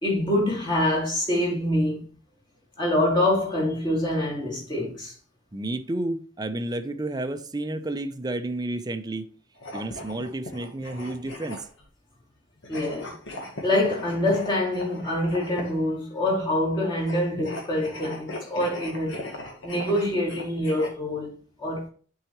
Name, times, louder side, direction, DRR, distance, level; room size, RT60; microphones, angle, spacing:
voice 1, 0.0-2.0 2.8-5.1 12.7-13.1 13.6-19.2 19.6-21.3 21.6-21.9, left 1 dB, 25° left, 3.0 m, -25 dB
voice 2, 5.5-9.2 9.7-11.7, right 2 dB, 20° right, 0.7 m, -31 dB
sound 1, 9.6-11.9 12.6-15.9 17.0-20.9, left 1 dB, 75° left, 1.7 m, -39 dB
11.0 x 4.8 x 3.1 m
head